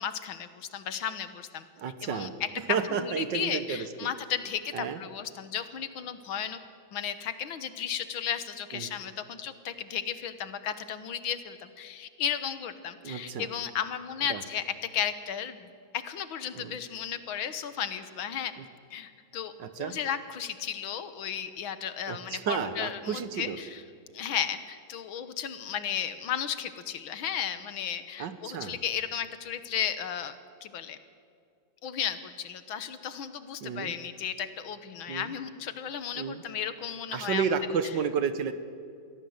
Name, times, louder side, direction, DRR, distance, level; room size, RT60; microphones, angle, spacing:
voice 1, 0.0-1.7 2.0-6.6 6.9-14.6 14.9-18.5 18.9-23.8 24.1-30.4 30.6-31.0 31.8-37.5, left 8 dB, 80° left, 12 dB, 1.9 m, -34 dB
voice 2, 1.8-2.3 2.7-4.1 4.7-5.0 8.7-8.9 13.0-13.5 14.3-14.4 16.5-16.7 19.6-20.0 22.1-23.6 28.2-28.8 33.6-33.9 35.1-35.3 36.2-36.4 37.1-38.5, right 6 dB, 65° right, 11 dB, 1.7 m, -32 dB
23.5 x 16.5 x 7.9 m, 2.4 s
omnidirectional pair, 2.2 m